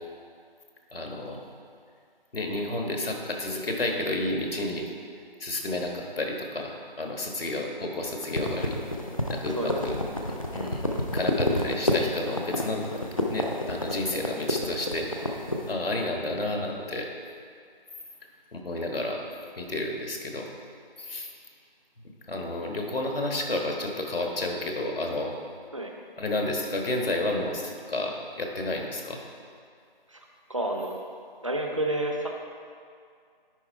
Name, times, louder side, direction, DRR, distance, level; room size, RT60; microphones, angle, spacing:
voice 1, 0.9-1.4 2.3-4.9 5.4-8.7 9.3-10.0 10.5-10.8 11.1-12.9 13.3-17.1 18.5-19.2 19.6-20.5 21.0-21.3 22.3-25.3 26.2-29.2, left 2 dB, 75° left, 1 dB, 1.4 m, -31 dB
sound 1, 8.2-15.7, left 1 dB, 35° left, 0.6 m, -29 dB
voice 2, 30.5-31.0 31.4-32.4, right 1 dB, 35° right, 1 dB, 0.6 m, -29 dB
10.0 x 3.8 x 4.5 m, 2.2 s
figure-of-eight pair, 175°, 29 cm